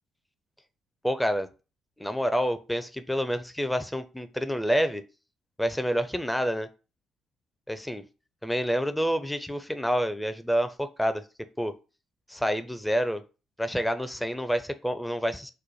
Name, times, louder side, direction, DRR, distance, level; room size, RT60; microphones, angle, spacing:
voice 1, 1.0-1.5 2.0-5.0 5.6-6.7 7.7-8.0 8.4-11.2 11.6-11.7 12.3-13.2 13.6-15.5, equal, 5° left, 9 dB, 0.5 m, -28 dB
3.1 x 2.1 x 4.1 m, 0.32 s
figure-of-eight pair, 45°, 0 cm